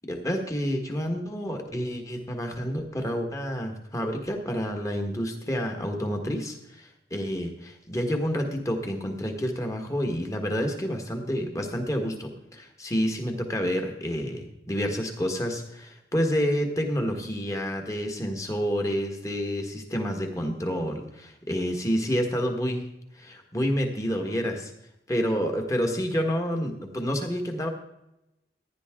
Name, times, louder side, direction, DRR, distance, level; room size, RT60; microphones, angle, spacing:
voice 1, 0.1-22.9 23.1-24.7 25.1-27.7, equal, 20° left, 3 dB, 1.6 m, -29 dB
15.5 x 10.0 x 3.8 m, 0.87 s
head